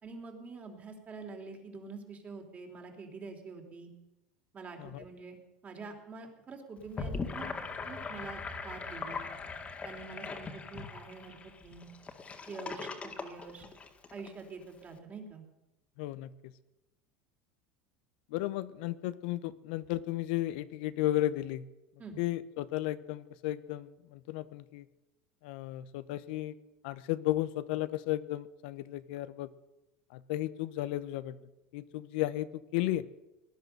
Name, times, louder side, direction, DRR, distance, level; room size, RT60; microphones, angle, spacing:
voice 1, 0.0-3.9 4.5-5.4 5.6-7.5 7.8-9.2 9.8-11.4 11.6-11.9 12.5-13.7 14.1-15.4 22.0-22.2, right 4 dB, 30° right, 3 dB, 3.4 m, -46 dB
Gurgling / Sink (filling or washing), 6.8-14.3, left 4 dB, 25° left, 2.0 m, -40 dB
voice 2, 16.0-16.5 18.3-21.6 22.2-24.8 25.4-26.5 26.8-29.5 30.1-31.4 31.7-33.0, left 15 dB, 75° left, 14 dB, 0.8 m, -34 dB
18.5 x 10.5 x 6.7 m, 0.97 s
supercardioid pair, 115°, 5 cm